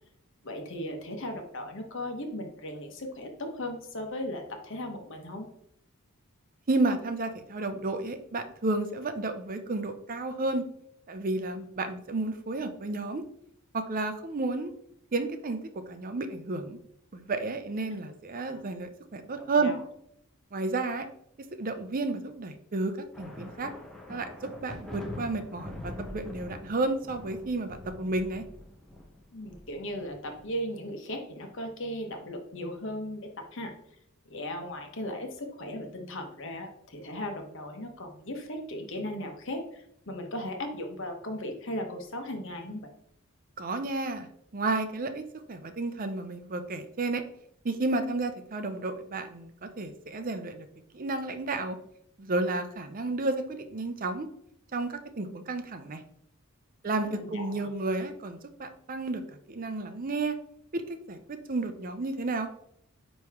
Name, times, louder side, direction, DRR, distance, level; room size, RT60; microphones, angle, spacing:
voice 1, 0.4-5.5 17.9-18.0 18.4-18.6 19.6-19.8 29.3-33.7 34.3-42.9 57.0-57.7, left 1 dB, 60° left, 4 dB, 1.1 m, -37 dB
voice 2, 6.7-10.7 11.1-13.2 13.7-14.7 15.1-15.6 15.9-16.8 17.1-19.7 20.5-21.1 21.6-23.7 24.1-28.4 43.6-44.3 44.5-45.2 45.5-47.2 47.6-50.7 50.9-51.8 52.2-54.3 54.7-56.0 56.8-59.2 59.5-60.4 60.7-62.5, right 2 dB, 40° right, 8 dB, 0.6 m, -31 dB
sound 1, 23.1-30.5, left 1 dB, ahead, 0.8 m, -44 dB
9.3 x 3.1 x 3.5 m, 0.72 s
head